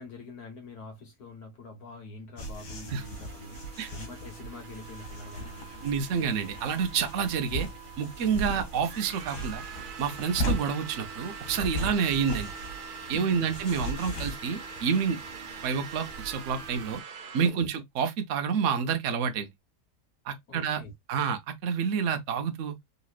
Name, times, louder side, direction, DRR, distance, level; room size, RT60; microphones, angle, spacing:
voice 1, 0.0-5.8 11.9-12.0 13.1-13.5 20.5-20.9, left 3 dB, 65° left, 1.9 m, -45 dB
sound 1, 2.4-17.0, right 1 dB, 85° left, 2.0 m, -38 dB
sound 2, 2.9-17.5, right 6 dB, 80° right, 0.4 m, -44 dB
voice 2, 5.8-7.7 8.0-9.6 10.0-12.5 13.1-15.2 15.6-17.0 17.3-19.5 20.3-20.8 21.1-22.7, right 6 dB, 55° right, 1.0 m, -28 dB
4.0 x 3.0 x 2.4 m
omnidirectional pair, 1.7 m